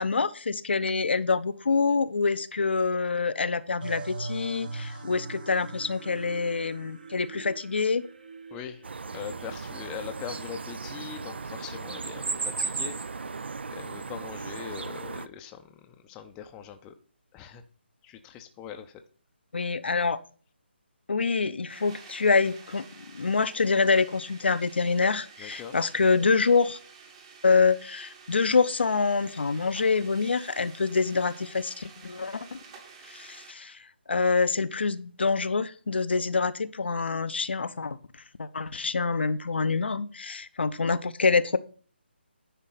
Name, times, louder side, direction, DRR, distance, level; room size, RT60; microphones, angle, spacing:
voice 1, 0.0-8.1 19.5-20.2 21.1-22.8 23.1-26.8 27.4-32.6 33.1-33.8 34.1-38.0 38.4-41.6, left 4 dB, 70° left, 11 dB, 0.6 m, -26 dB
sound 1, 3.8-10.0, right 3 dB, 50° right, 1.2 m, -41 dB
voice 2, 8.5-8.8 9.1-12.9 13.7-16.9 17.3-17.6 18.0-18.9 25.4-25.9, left 8 dB, 15° left, 6 dB, 0.5 m, -41 dB
sound 2, 8.8-15.3, right 4 dB, 70° right, 0.5 m, -36 dB
sound 3, 21.7-33.5, right 5 dB, 30° right, 1.1 m, -50 dB
10.0 x 3.7 x 5.7 m, 0.42 s
figure-of-eight pair, 150°, 6 cm